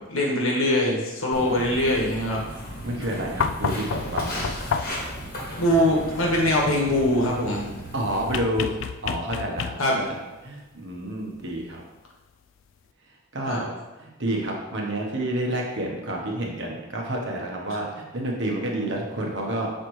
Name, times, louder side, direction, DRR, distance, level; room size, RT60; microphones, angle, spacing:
voice 1, 0.0-2.4 5.6-7.6 9.8-10.0 13.5-13.6, left 1 dB, 85° left, -1 dB, 1.4 m, -22 dB
Walk footsteps, 1.3-8.3, equal, 45° left, 1.2 m, -36 dB
voice 2, 2.8-4.4 7.9-8.7 9.0-11.8 13.3-13.7 14.0-19.7, right 1 dB, 55° right, 0 dB, 1.1 m, -29 dB
sound 1, 3.4-5.1 8.3-10.1 11.6-11.7, left 6 dB, 65° left, 0.3 m, -29 dB
6.8 x 4.4 x 3.2 m, 1.1 s
head